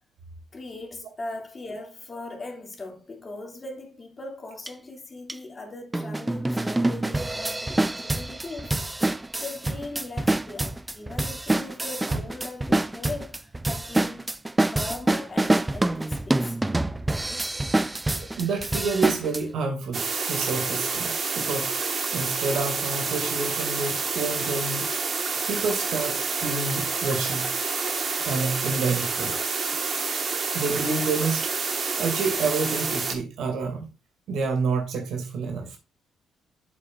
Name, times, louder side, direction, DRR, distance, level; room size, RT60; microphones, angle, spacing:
voice 1, 0.5-8.8 9.4-14.3 14.7-16.6, left 2 dB, 30° left, 2.5 m, -39 dB
sound 1, 4.7-4.8 5.3-5.4 5.9-19.4, right 2 dB, 15° right, 0.4 m, -26 dB
voice 2, 18.2-21.7 22.1-24.9 25.5-27.5 28.2-29.4 30.5-31.4 31.9-33.8 34.3-35.8, right 4 dB, 75° right, 2.4 m, -28 dB
sound 2, 19.9-33.1, right 4 dB, 45° right, 1.5 m, -28 dB
8.3 x 7.3 x 2.5 m
cardioid pair, 90°, 0 cm